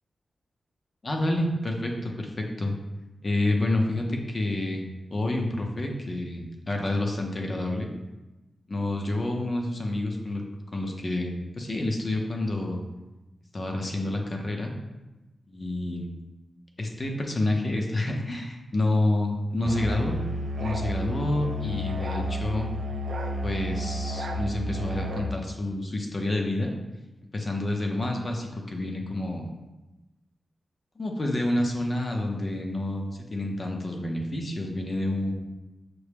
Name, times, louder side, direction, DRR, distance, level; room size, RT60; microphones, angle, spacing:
voice 1, 1.0-2.7 3.2-7.9 8.7-10.4 10.7-12.8 13.5-14.7 15.5-16.1 16.8-20.2 20.6-22.7 23.4-26.7 27.3-29.5 31.0-35.3, left 1 dB, 40° left, 2 dB, 0.6 m, -28 dB
Musical instrument, 19.6-25.3, equal, 75° right, 0.3 m, -31 dB
5.9 x 2.1 x 3.3 m, 1.1 s
wide cardioid pair, 100°, 0 cm